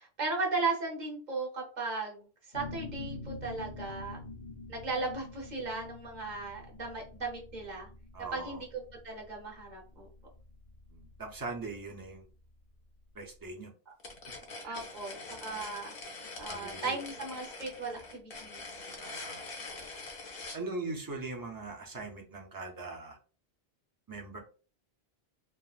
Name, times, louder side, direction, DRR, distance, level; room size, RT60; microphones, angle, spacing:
voice 1, 0.0-4.2 4.7-7.9 8.3-8.7 9.0-10.1 14.6-15.9 16.4-18.6, right 3 dB, 45° right, 0 dB, 1.0 m, -36 dB
sound 1, 2.5-11.9, left 2 dB, 90° left, 1.0 m, -46 dB
voice 2, 8.1-8.6 10.9-12.2 13.1-13.7 14.6-14.7 16.5-17.0 18.9-19.4 20.5-23.2 24.1-24.4, right 3 dB, 25° right, 1 dB, 0.5 m, -41 dB
sound 2, 14.0-20.6, left 3 dB, 65° left, 1.0 m, -44 dB
3.5 x 2.0 x 2.4 m, 0.37 s
omnidirectional pair, 1.1 m